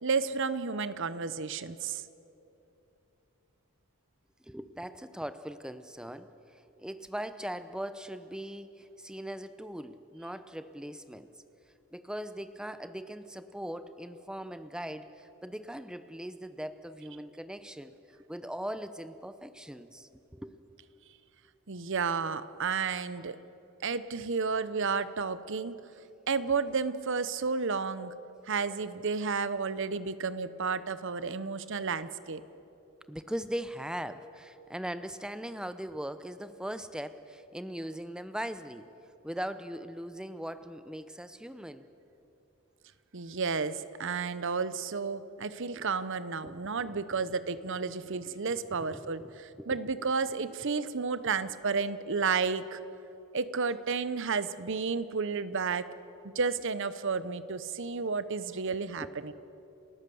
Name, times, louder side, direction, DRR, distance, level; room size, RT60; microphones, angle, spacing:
voice 1, 0.0-2.0 21.7-23.4 23.8-25.7 26.3-28.1 28.5-32.4 43.1-52.8 53.3-55.9 56.2-59.3, right 5 dB, 55° right, 14 dB, 0.8 m, -32 dB
voice 2, 4.4-11.4 11.9-20.5 33.1-38.9 39.2-41.9 45.4-45.5 45.8-45.9 46.4-47.2 48.1-49.8 58.7-59.1, equal, 5° right, 12 dB, 0.6 m, -40 dB
29.5 x 14.0 x 7.0 m, 2.9 s
head